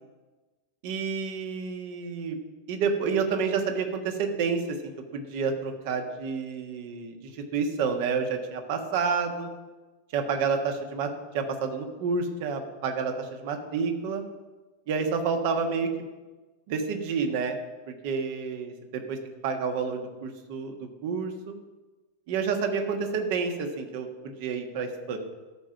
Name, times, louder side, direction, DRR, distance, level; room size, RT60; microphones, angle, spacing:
voice 1, 0.8-2.4 2.7-4.8 5.1-9.5 10.1-14.2 14.9-15.9 16.7-17.6 17.9-19.2 19.4-21.5 22.3-25.2, right 5 dB, 50° right, 5 dB, 1.4 m, -29 dB
13.0 x 5.1 x 5.8 m, 1.2 s
figure-of-eight pair, 90°, 0 cm